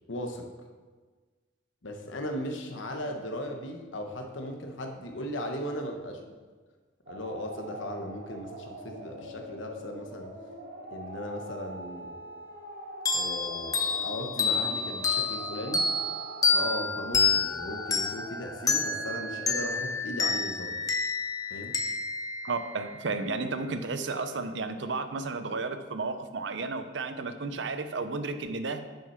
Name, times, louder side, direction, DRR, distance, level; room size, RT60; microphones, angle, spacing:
voice 1, 0.1-0.5 1.8-6.3 7.1-10.3 10.9-12.2 13.1-15.8 16.5-20.7 21.5-21.7, left 1 dB, 80° left, 4 dB, 1.1 m, -37 dB
sound 1, 7.1-19.8, equal, 50° right, 1.5 m, -43 dB
sound 2, 13.1-23.3, left 4 dB, 20° left, 0.8 m, -29 dB
voice 2, 22.4-28.9, right 3 dB, 65° right, 9 dB, 0.6 m, -33 dB
7.0 x 6.3 x 5.8 m, 1.4 s
head